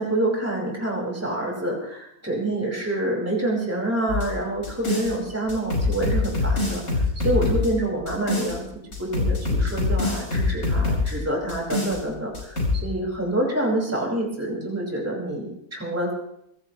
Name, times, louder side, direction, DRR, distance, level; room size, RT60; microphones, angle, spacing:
voice 1, 0.0-8.7 9.0-16.1, right 1 dB, 10° right, -3 dB, 4.9 m, -27 dB
sound 1, 4.1-5.1 5.5-8.6 8.9-11.1 11.5-12.0 12.3-12.8, left 3 dB, 65° left, 6.2 m, -24 dB
25.0 x 18.5 x 3.0 m, 0.78 s
omnidirectional pair, 1.6 m